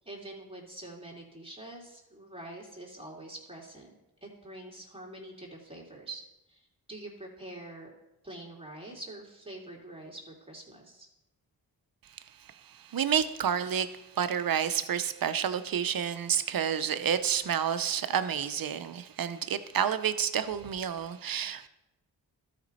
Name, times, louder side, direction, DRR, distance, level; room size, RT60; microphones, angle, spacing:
voice 1, 0.0-3.9 4.2-6.2 6.5-7.9 8.2-11.1, right 1 dB, 15° right, 2.8 m, -45 dB
voice 2, 12.0-21.7, right 8 dB, 55° right, 0.7 m, -30 dB
12.5 x 5.2 x 4.1 m
cardioid pair, 45°, 41 cm